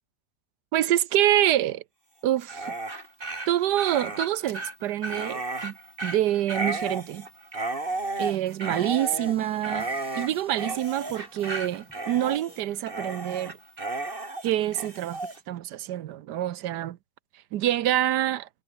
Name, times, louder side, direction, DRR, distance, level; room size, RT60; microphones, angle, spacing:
voice 1, 0.7-1.8 2.2-2.8 3.5-7.3 8.2-9.9 10.1-13.6 14.4-15.2 15.5-17.0 17.5-18.5, right 12 dB, 90° right, 1.4 m, -26 dB
Dog, 2.4-15.4, right 2 dB, 35° right, 3.6 m, -33 dB
sound 1, 8.0-12.7, equal, 5° right, 6.8 m, -52 dB
omnidirectional pair, 1.7 m